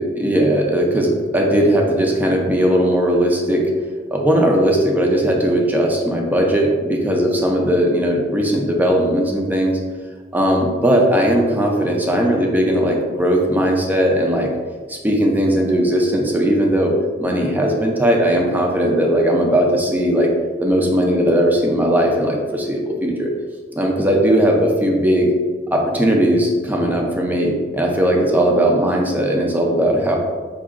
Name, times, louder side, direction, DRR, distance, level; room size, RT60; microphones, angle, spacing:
voice 1, 0.0-3.7 4.1-9.8 10.3-14.5 14.9-20.3 20.6-23.3 23.7-25.3 25.7-30.2, equal, 10° right, 0 dB, 0.5 m, -18 dB
4.9 x 2.7 x 2.5 m, 1.5 s
head